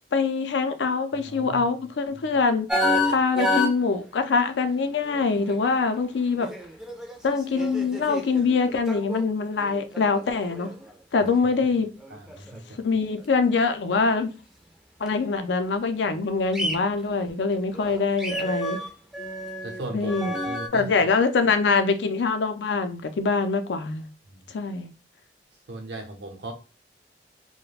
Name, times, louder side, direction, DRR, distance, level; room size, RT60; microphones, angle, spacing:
voice 1, 0.1-2.7 3.1-6.5 7.2-10.7 11.1-11.9 12.8-14.3 15.0-18.8 19.9-20.3 20.7-24.1 24.5-24.9, left 4 dB, 85° left, 0.4 m, -24 dB
voice 2, 1.2-1.6 11.6-11.7 12.1-12.8 19.6-20.1 20.4-20.9 24.3-24.6 25.7-26.5, right 2 dB, 75° right, 0.7 m, -37 dB
sound 1, 2.7-3.8 5.0-6.0 6.3-9.2 9.6-10.9 11.3-11.6 12.0-12.6 13.2-13.3 13.7-14.0 15.1-15.2 16.5-16.7 17.5-20.7, left 1 dB, 5° right, 0.4 m, -29 dB
2.4 x 2.1 x 3.2 m
head